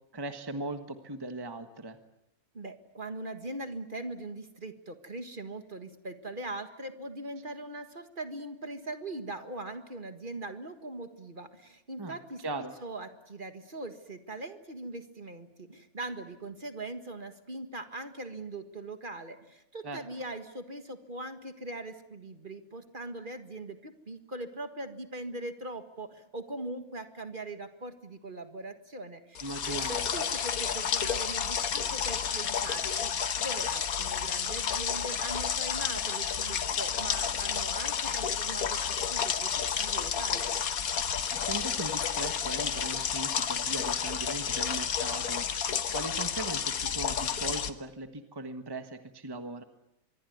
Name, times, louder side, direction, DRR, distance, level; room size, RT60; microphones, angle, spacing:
voice 1, 0.1-2.0 12.0-12.2 12.4-12.7 19.8-20.0 29.4-30.1 41.3-45.5 45.9-49.6, right 2 dB, 15° right, 8 dB, 1.5 m, -38 dB
voice 2, 2.5-12.4 12.8-40.5, right 2 dB, 35° right, 8 dB, 1.8 m, -41 dB
sound 1, 29.4-47.7, left 7 dB, 80° left, 1.7 m, -31 dB
25.0 x 23.0 x 9.4 m, 0.83 s
omnidirectional pair, 1.5 m